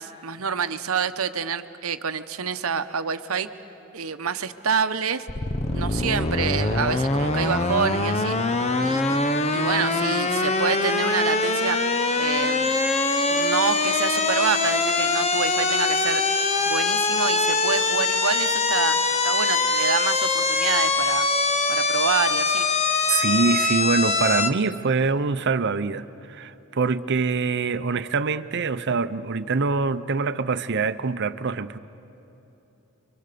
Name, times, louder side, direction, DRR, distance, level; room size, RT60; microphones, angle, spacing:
voice 1, 0.0-3.5 3.9-5.3 5.7-8.4 8.8-9.2 9.5-11.8 12.2-12.8 13.3-16.2 16.7-21.3 21.7-22.7, right 6 dB, 90° right, 10 dB, 0.9 m, -27 dB
sound 1, 5.3-24.5, left 3 dB, 30° left, 0.8 m, -23 dB
Frog, 12.6-20.9, left 4 dB, 65° left, 2.5 m, -34 dB
voice 2, 23.1-31.8, right 4 dB, 55° right, 12 dB, 0.7 m, -24 dB
29.5 x 23.5 x 6.8 m, 3.0 s
head